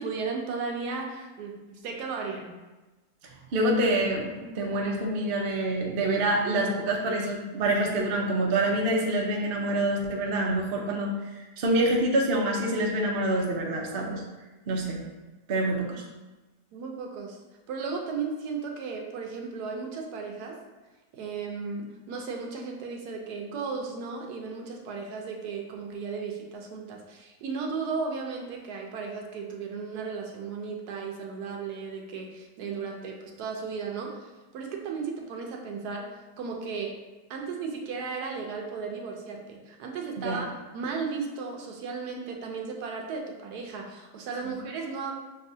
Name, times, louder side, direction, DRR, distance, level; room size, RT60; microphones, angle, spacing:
voice 1, 0.0-2.6 16.7-17.4 17.7-20.6 21.1-37.0 37.3-45.1, right 5 dB, 80° right, 1 dB, 1.2 m, -35 dB
voice 2, 3.5-14.2 14.7-15.0 15.5-16.0 40.2-40.4 44.4-44.5, right 1 dB, 55° right, 0 dB, 0.6 m, -26 dB
6.3 x 2.4 x 2.6 m, 1.2 s
omnidirectional pair, 1.7 m